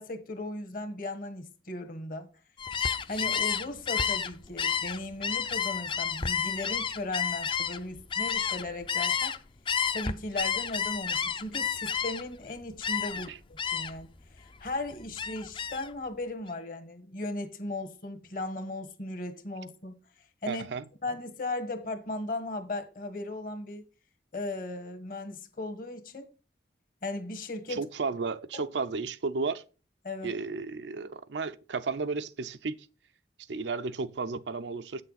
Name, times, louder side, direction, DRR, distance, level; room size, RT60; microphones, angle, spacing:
voice 1, 0.0-2.3 3.1-9.3 9.9-14.1 14.3-19.9 20.4-20.6 21.0-23.8 24.3-26.3 27.0-27.9 28.5-28.6 30.0-30.3, left 2 dB, 50° left, 1.3 m, -37 dB
Gull seagull, 2.6-9.4 9.7-12.4 12.8-13.3 13.6-14.1 14.4-15.9, left 7 dB, 30° left, 0.5 m, -30 dB
voice 2, 20.5-20.9 27.7-29.6 30.2-32.9 33.5-35.0, right 4 dB, 85° right, 0.6 m, -33 dB
8.2 x 6.7 x 4.0 m
head